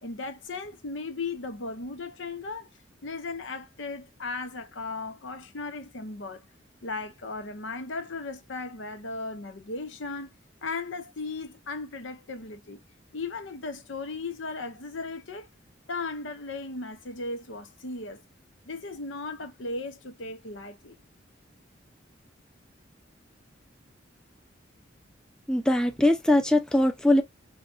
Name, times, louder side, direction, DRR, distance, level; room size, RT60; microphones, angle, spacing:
voice 1, 0.0-2.7 3.0-6.4 6.8-10.3 10.6-12.8 13.1-15.5 15.9-18.2 18.6-21.0, left 3 dB, 85° left, 0.8 m, -36 dB
voice 2, 25.5-27.2, left 1 dB, 5° left, 0.5 m, -21 dB
5.6 x 2.3 x 2.4 m
head